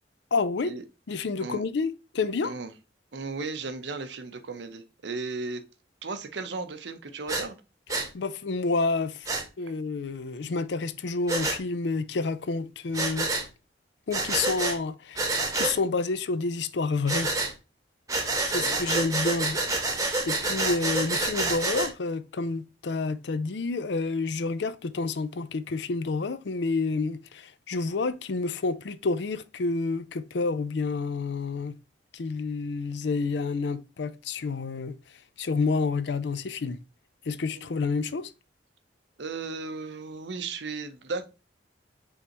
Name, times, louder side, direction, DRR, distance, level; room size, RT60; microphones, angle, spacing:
voice 1, 0.3-0.8 1.1-2.5 8.1-9.3 9.6-13.3 14.1-17.3 18.5-19.6 20.3-31.8 32.1-35.0 35.4-36.8 37.3-38.3, left 3 dB, 65° left, 0.4 m, -29 dB
voice 2, 3.1-5.6 6.0-7.6 18.6-18.8 37.5-37.7 39.2-41.3, right 4 dB, 70° right, 0.7 m, -35 dB
Breathing, 7.3-7.4 7.9-8.1 9.2-9.4 11.3-11.6 12.9-13.5 14.1-14.8 15.1-15.8 17.1-17.5 18.1-21.9, right 2 dB, 20° right, 0.9 m, -28 dB
5.3 x 3.4 x 2.9 m
head